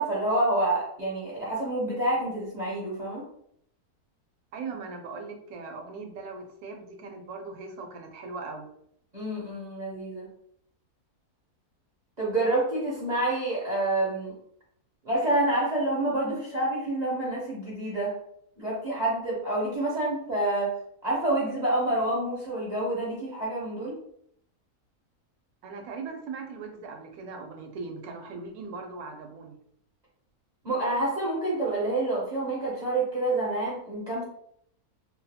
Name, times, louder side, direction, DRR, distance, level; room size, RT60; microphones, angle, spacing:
voice 1, 0.0-3.2 9.1-10.3 12.2-14.3 15.0-18.1 18.6-20.7 21.0-24.0 30.6-34.2, right 1 dB, 40° right, -6 dB, 0.6 m, -28 dB
voice 2, 4.5-8.7 25.6-29.6, right 4 dB, 75° right, 3 dB, 1.1 m, -39 dB
2.7 x 2.3 x 2.7 m, 0.69 s
omnidirectional pair, 1.6 m